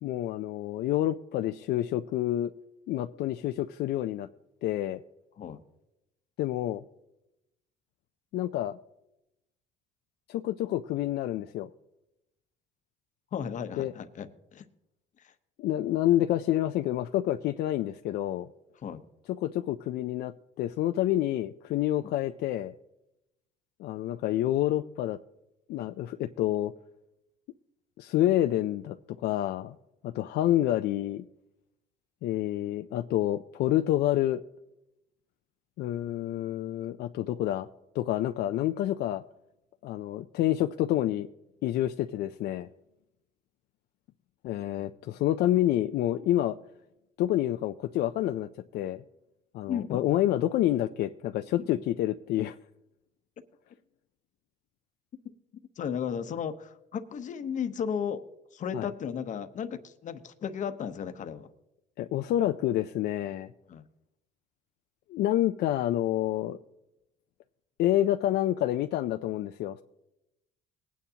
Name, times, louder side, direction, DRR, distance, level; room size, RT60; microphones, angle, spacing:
voice 1, 0.0-2.5 2.9-4.3 4.6-5.0 6.4-6.8 8.3-8.8 10.3-11.7 13.8-13.9 15.6-18.5 19.3-22.7 23.8-25.2 25.7-26.7 28.0-29.0 29.2-29.8 30.0-31.2 32.2-34.4 35.8-37.7 37.9-39.2 39.8-41.3 41.6-42.7 44.4-46.6 47.2-49.0 49.5-52.5 58.7-58.9 62.0-63.5 65.1-66.6 67.8-69.8, left 13 dB, 70° left, 7 dB, 0.5 m, -28 dB
voice 2, 13.3-14.6 15.2-15.3 18.8-19.0 22.0-22.1 49.7-50.0 51.6-51.8 55.8-58.2 58.5-61.5 63.7-63.8, left 7 dB, 50° left, 9 dB, 0.9 m, -35 dB
20.0 x 9.3 x 2.8 m, 0.90 s
cardioid pair, 110°, 17 cm